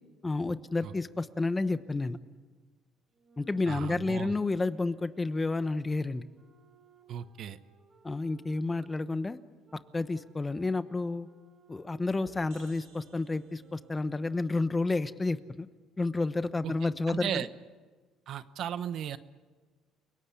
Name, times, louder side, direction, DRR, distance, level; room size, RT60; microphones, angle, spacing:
voice 1, 0.2-2.2 3.4-6.3 8.0-9.4 9.9-11.3 11.7-15.7 16.0-17.5, left 3 dB, 20° left, 13 dB, 1.0 m, -30 dB
sound 1, 3.1-8.9 9.6-15.1, right 3 dB, 30° right, 5.7 m, -61 dB
voice 2, 3.7-4.3 7.1-7.6 16.6-16.7 17.1-17.5 18.3-19.2, right 9 dB, 60° right, 13 dB, 1.0 m, -35 dB
sound 2, 12.2-13.9, right 6 dB, 75° right, 3.8 m, -56 dB
29.5 x 18.0 x 8.5 m, 1.4 s
cardioid pair, 100°, 0 cm